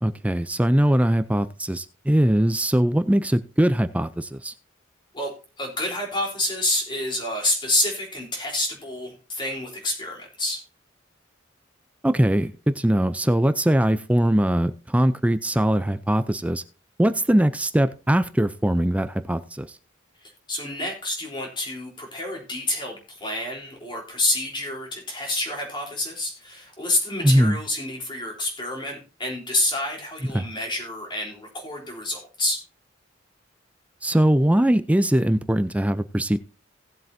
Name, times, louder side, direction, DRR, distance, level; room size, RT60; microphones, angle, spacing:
voice 1, 0.0-4.5 12.0-16.6 17.0-19.7 27.2-27.6 30.3-30.5 34.0-36.4, right 1 dB, 5° right, 12 dB, 0.4 m, -21 dB
voice 2, 5.1-10.6 20.2-32.6, left 1 dB, 25° left, 0 dB, 3.7 m, -28 dB
18.0 x 7.6 x 2.7 m, 0.32 s
head